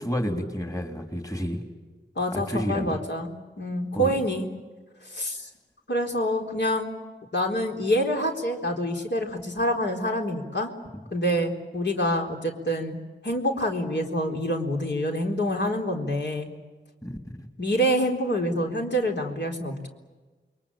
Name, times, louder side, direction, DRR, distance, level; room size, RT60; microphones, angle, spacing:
voice 1, 0.0-1.6 2.3-3.0 3.9-4.2 10.9-11.0 17.0-17.5, equal, 20° left, 4 dB, 3.5 m, -30 dB
voice 2, 2.2-4.5 5.0-5.5 5.9-6.9 7.3-10.7 11.1-13.0 13.2-16.5 17.6-19.9, equal, 70° left, 1 dB, 4.1 m, -26 dB
29.0 x 22.5 x 8.8 m, 1.3 s
wide cardioid pair, 85°, 19 cm